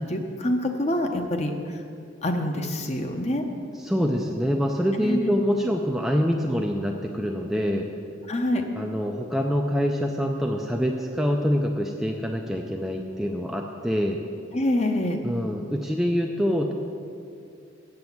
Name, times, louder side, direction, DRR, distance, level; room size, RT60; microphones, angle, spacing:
voice 1, 0.0-1.8 2.2-3.4 5.0-5.3 8.3-8.7 14.5-15.2, left 1 dB, 35° left, 4 dB, 0.8 m, -26 dB
voice 2, 3.8-7.9 8.8-14.2 15.2-16.7, equal, ahead, 1 dB, 0.4 m, -25 dB
7.9 x 7.8 x 7.1 m, 2.5 s
head